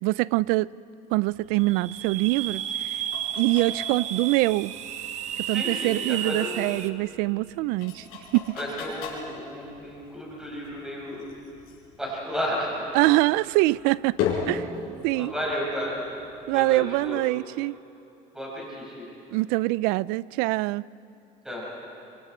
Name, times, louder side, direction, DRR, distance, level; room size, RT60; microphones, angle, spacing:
voice 1, 0.0-0.7 1.1-3.0 3.4-4.8 5.4-8.1 8.3-8.5 12.9-14.2 14.5-14.7 15.0-15.3 16.5-17.8 19.3-20.8, right 20 dB, 85° right, 0.4 m, -24 dB
sound 1, 1.2-17.0, left 6 dB, 75° left, 5.7 m, -39 dB
sound 2, 1.5-6.9, right 10 dB, 50° right, 0.9 m, -33 dB
voice 2, 5.5-6.7 8.6-11.3 12.0-12.7 15.1-16.0 16.5-17.2 18.3-19.1 21.4-21.6, equal, 5° right, 5.5 m, -33 dB
26.5 x 24.0 x 4.4 m
cardioid pair, 150°, 15 cm